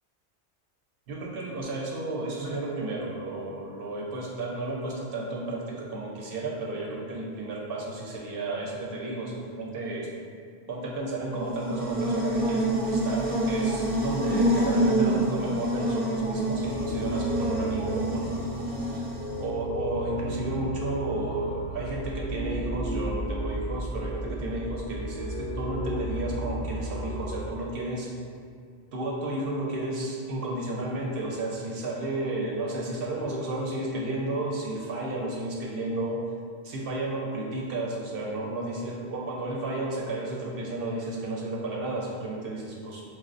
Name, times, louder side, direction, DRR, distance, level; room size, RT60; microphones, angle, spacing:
voice 1, 1.1-10.1 10.7-18.4 19.4-28.1 28.9-36.2 36.6-43.0, right 2 dB, 65° right, -3 dB, 0.7 m, -32 dB
Buzz, 11.3-19.5, right 1 dB, 15° right, 0.3 m, -27 dB
sound 1, 16.5-27.5, right 1 dB, 40° left, 0.5 m, -34 dB
5.9 x 2.0 x 2.5 m, 2.2 s
omnidirectional pair, 1.2 m